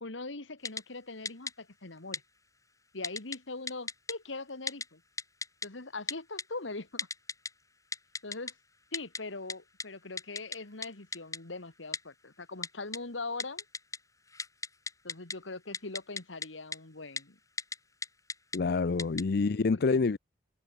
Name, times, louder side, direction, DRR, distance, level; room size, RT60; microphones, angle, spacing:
voice 1, 0.0-2.2 2.9-5.0 5.6-7.1 8.2-8.5 8.9-13.6 15.0-17.4 19.7-20.0, left 3 dB, 85° left, 2.1 m, -41 dB
Typing, 0.6-0.8 1.2-1.5 2.1-2.2 3.0-3.4 3.7-4.1 4.7-4.8 5.2-5.7 6.1-6.4 7.0-7.5 7.9-8.5 8.9-9.2 9.5-9.6 9.8-9.9 10.2-10.6 10.8-10.9 11.1-11.4 11.9-12.0 12.6-13.0 13.4-14.0 14.3-15.3 15.7-16.5 16.7-16.8 17.2-17.3 17.6-17.8 18.0-18.6 19.0-19.2, left 4 dB, 20° left, 3.7 m, -35 dB
voice 2, 18.5-20.2, left 4 dB, 60° left, 0.5 m, -27 dB
head